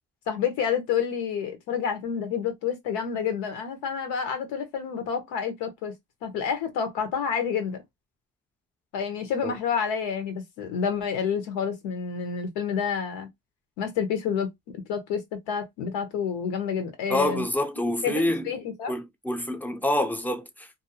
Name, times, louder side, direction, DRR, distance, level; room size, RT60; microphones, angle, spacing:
voice 1, 0.3-5.9 6.2-7.8 8.9-13.3 13.8-14.5 14.9-17.4 18.0-18.9, left 7 dB, 90° left, 1.0 m, -29 dB
voice 2, 17.1-18.5 18.9-20.8, left 1 dB, 5° left, 0.4 m, -27 dB
2.6 x 2.0 x 2.7 m
supercardioid pair, 75°, 42 cm